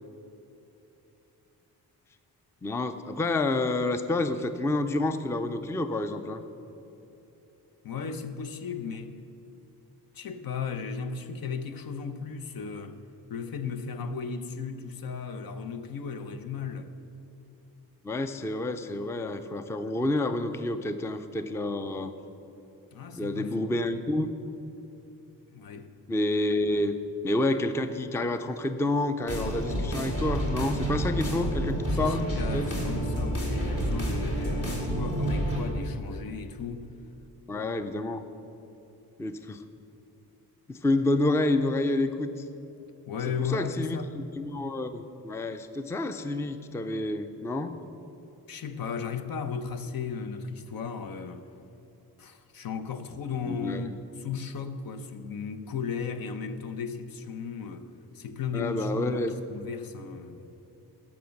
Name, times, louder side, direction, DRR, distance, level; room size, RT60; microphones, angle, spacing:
voice 1, 2.6-6.4 18.0-22.1 23.1-24.3 26.1-27.0 27.2-32.7 37.5-38.2 39.2-39.6 40.7-42.3 43.4-44.0 44.4-47.8 53.5-53.9 58.5-59.3, left 2 dB, 5° left, 0.4 m, -29 dB
voice 2, 7.8-9.2 10.1-13.0 13.3-16.9 22.9-23.9 25.5-25.9 31.9-36.9 43.1-44.1 48.5-51.4 52.2-60.4, left 5 dB, 65° left, 0.8 m, -35 dB
sound 1, 29.3-35.6, right 1 dB, 40° left, 2.9 m, -29 dB
14.0 x 6.0 x 6.4 m
cardioid pair, 115°, 38 cm